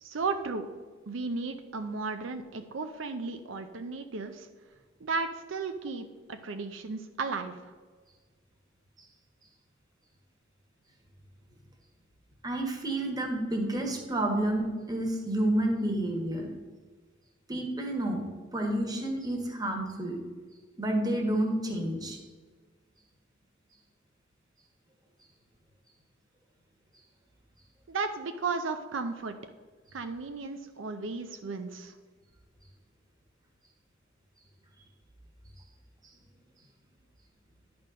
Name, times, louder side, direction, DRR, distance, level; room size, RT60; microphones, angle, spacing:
voice 1, 0.0-0.7 1.1-4.5 5.0-7.7 27.9-29.4 29.9-31.9, right 4 dB, 75° right, 8 dB, 0.6 m, -34 dB
voice 2, 12.4-16.5 17.5-18.2 18.5-20.2 20.8-22.2, right 1 dB, 20° right, 2 dB, 1.5 m, -29 dB
10.5 x 4.3 x 6.3 m, 1.4 s
head